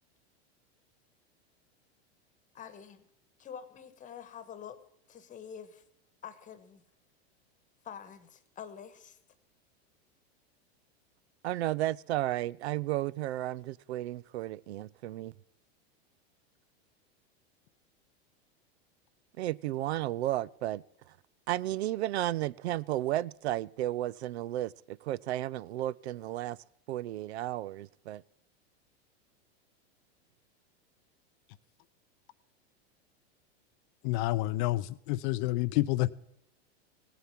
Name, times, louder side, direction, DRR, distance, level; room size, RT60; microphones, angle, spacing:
voice 1, 2.5-3.1 3.4-4.8 5.1-5.8 6.2-6.8 7.8-9.2, left 8 dB, 25° left, 1.2 m, -46 dB
voice 2, 11.4-15.3 19.4-20.8 21.5-26.6 26.9-28.2, right 14 dB, 85° right, 0.5 m, -33 dB
voice 3, 34.0-36.1, left 17 dB, 50° left, 0.4 m, -29 dB
17.5 x 8.1 x 5.8 m
supercardioid pair, 125°, 32 cm